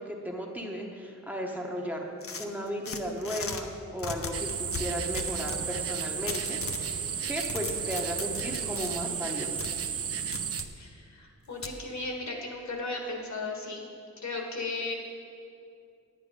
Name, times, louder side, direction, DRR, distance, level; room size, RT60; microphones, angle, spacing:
voice 1, 0.0-2.0 2.4-9.6, equal, 5° right, 0 dB, 0.9 m, -35 dB
sound 1, 2.2-3.6 4.0-5.6 6.3-6.9 7.2-8.9 9.6-9.7 10.3-10.7 11.6-11.8, left 4 dB, 50° left, 0.7 m, -37 dB
sound 2, 4.3-10.7, right 7 dB, 50° right, 0.5 m, -33 dB
voice 2, 10.8-13.9 14.2-15.0, left 3 dB, 65° left, 1 dB, 1.6 m, -36 dB
9.9 x 9.6 x 5.2 m, 2.5 s
wide cardioid pair, 150°, 30 cm